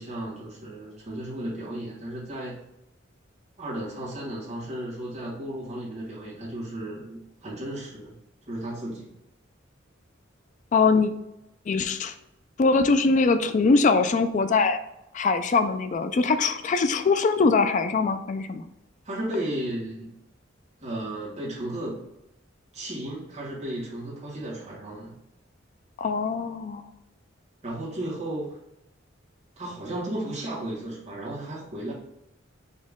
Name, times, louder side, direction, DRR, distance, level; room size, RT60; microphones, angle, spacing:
voice 1, 0.0-2.6 3.6-8.2 8.5-9.1 19.0-20.1 20.8-22.0 22.7-25.1 27.6-28.6 29.6-31.9, right 1 dB, 35° right, -8 dB, 1.6 m, -34 dB
voice 2, 10.7-11.1 11.7-12.1 12.6-14.8 15.1-18.6 26.0-26.8, left 4 dB, 40° left, 9 dB, 0.4 m, -22 dB
4.3 x 2.9 x 3.6 m, 0.86 s
head